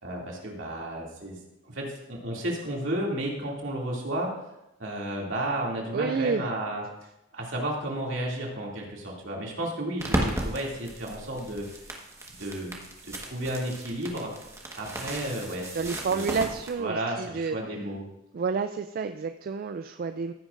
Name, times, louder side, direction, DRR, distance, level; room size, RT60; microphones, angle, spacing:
voice 1, 0.0-1.4 1.7-4.3 4.8-6.8 7.3-11.7 12.3-12.8 13.0-14.3 14.7-16.4 16.8-18.1, right 1 dB, 65° right, -2 dB, 2.5 m, -32 dB
voice 2, 5.9-6.5 15.7-17.6 18.3-20.3, right 5 dB, 45° right, 8 dB, 0.3 m, -29 dB
sound 1, 10.0-16.7, right 1 dB, 15° right, 1.4 m, -35 dB
15.0 x 9.0 x 2.5 m, 0.91 s
head